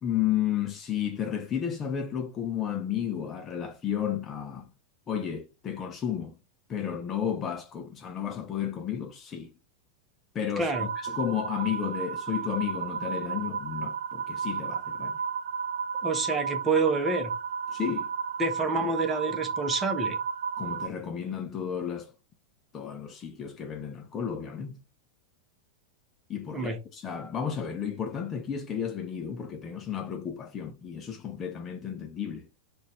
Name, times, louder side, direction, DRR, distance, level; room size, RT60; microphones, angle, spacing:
voice 1, 0.0-4.7 5.1-6.4 6.7-9.5 10.3-15.2 17.7-18.1 18.7-18.9 20.6-22.1 22.7-24.8 26.3-32.5, left 9 dB, 25° left, 0.7 m, -32 dB
voice 2, 10.6-10.9 16.0-17.3 18.4-20.2 26.5-26.8, right 3 dB, 15° right, 1.1 m, -28 dB
sound 1, 10.7-20.9, right 6 dB, 60° right, 0.5 m, -33 dB
4.0 x 2.6 x 4.5 m
figure-of-eight pair, 90°, 0 cm